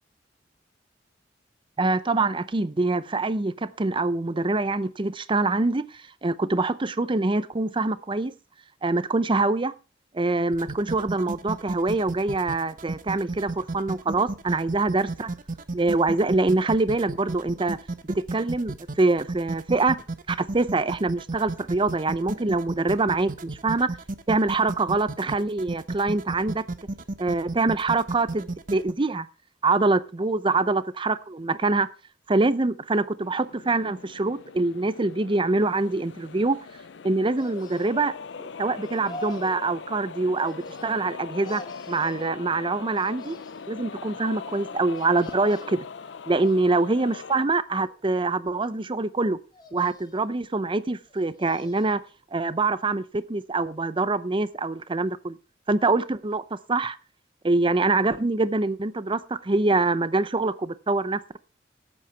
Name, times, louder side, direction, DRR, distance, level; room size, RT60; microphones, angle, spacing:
voice 1, 1.8-8.3 8.8-9.7 10.1-15.3 15.7-17.8 18.0-20.0 20.3-23.9 24.3-26.6 27.2-29.3 29.6-31.9 32.3-36.6 37.0-38.1 38.4-41.6 41.9-43.4 43.7-45.9 46.3-49.4 49.7-52.0 52.3-55.4 55.7-57.0 57.4-61.2, right 3 dB, 30° right, 0.6 m, -24 dB
sound 1, 10.5-28.9, right 2 dB, 50° right, 0.9 m, -33 dB
sound 2, 33.2-47.4, left 5 dB, 70° left, 0.6 m, -41 dB
sound 3, 37.4-38.2 38.8-39.6 40.4-41.1 41.4-42.3 42.9-43.8 44.9-45.9 46.4-47.1 47.7-48.5 49.5-50.3 51.1-52.0 52.4-52.5, left 1 dB, 25° left, 2.3 m, -45 dB
12.5 x 8.7 x 4.5 m
head